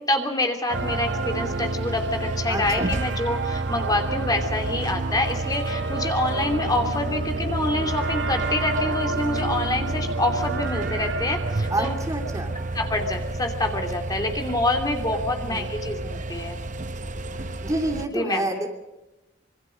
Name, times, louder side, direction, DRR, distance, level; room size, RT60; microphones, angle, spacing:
voice 1, 0.0-11.9 12.7-16.6 18.1-18.5, left 2 dB, 20° left, 4 dB, 2.8 m, -26 dB
sound 1, 0.7-18.1, right 2 dB, 40° right, 0.8 m, -31 dB
sound 2, 0.7-13.3, right 3 dB, 65° right, 1.3 m, -32 dB
voice 2, 2.5-2.9 11.7-12.6 15.4-15.7 17.3-18.7, right 1 dB, 20° right, 4 dB, 2.9 m, -28 dB
26.0 x 25.0 x 5.3 m, 1.0 s
head